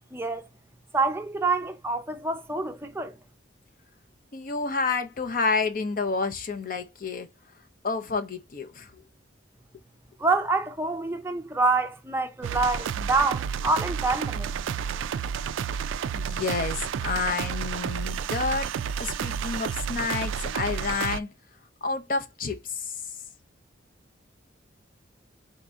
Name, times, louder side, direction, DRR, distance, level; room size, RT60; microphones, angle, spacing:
voice 1, 0.1-0.5 0.9-3.2 10.2-14.5, right 3 dB, 10° right, 0.5 m, -26 dB
voice 2, 4.3-7.3 7.8-9.0 16.1-18.7 19.0-21.3 21.8-23.0, left 4 dB, 45° left, 0.5 m, -29 dB
sound 1, 12.4-21.2, right 7 dB, 80° right, 0.3 m, -31 dB
4.2 x 2.7 x 3.4 m
head